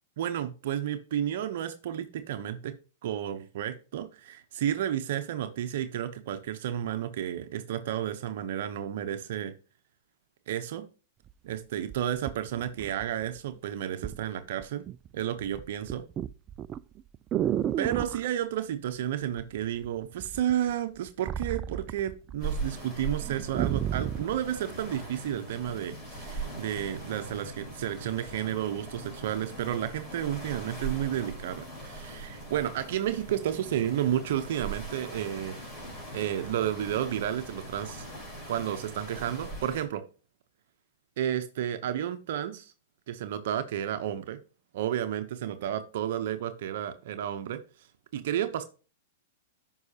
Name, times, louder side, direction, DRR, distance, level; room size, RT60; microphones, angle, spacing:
voice 1, 0.2-2.7 3.0-9.5 10.5-10.9 11.4-14.8 15.1-16.0 17.8-35.6 36.1-38.1 38.5-40.0 41.2-42.7 43.1-44.4 44.7-47.6 48.1-48.6, right 11 dB, 65° right, 8 dB, 0.7 m, -32 dB
sound 1, 11.3-11.4 11.9-13.4 14.0-14.2 14.6-15.1 15.4-18.2 19.4-19.9 20.2-22.5 22.8-22.9 23.2-24.3 25.0-25.1, right 10 dB, 30° right, 0.3 m, -33 dB
sound 2, 22.4-39.9, right 3 dB, 25° left, 4.3 m, -40 dB
9.5 x 5.4 x 2.8 m, 0.35 s
hypercardioid pair, 130°, 0 cm